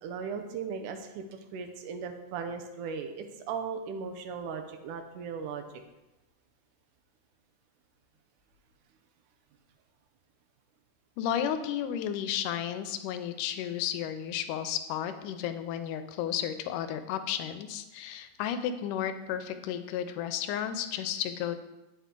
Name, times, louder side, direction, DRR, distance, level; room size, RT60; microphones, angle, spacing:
voice 1, 0.0-5.6, right 6 dB, 80° right, 6 dB, 2.2 m, -37 dB
voice 2, 11.2-21.6, left 9 dB, 85° left, 10 dB, 2.1 m, -33 dB
8.4 x 5.5 x 3.7 m, 1.0 s
omnidirectional pair, 3.6 m